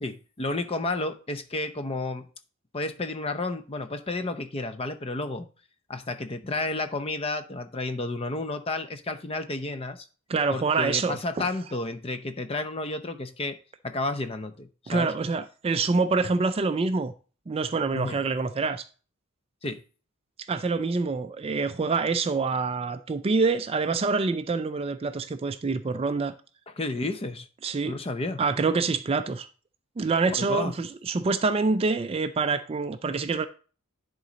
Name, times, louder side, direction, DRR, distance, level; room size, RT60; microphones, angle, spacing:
voice 1, 0.0-2.2 2.7-5.5 5.9-10.1 10.5-13.6 13.8-15.1 17.9-18.2 19.6-19.8 26.7-27.5 27.8-28.4 30.3-30.7, left 2 dB, 25° left, 0.6 m, -31 dB
voice 2, 10.3-11.2 14.9-17.1 17.5-18.9 20.5-26.3 27.6-27.9 28.4-29.5 30.0-33.5, right 4 dB, 25° right, 0.3 m, -26 dB
10.5 x 3.9 x 4.0 m
head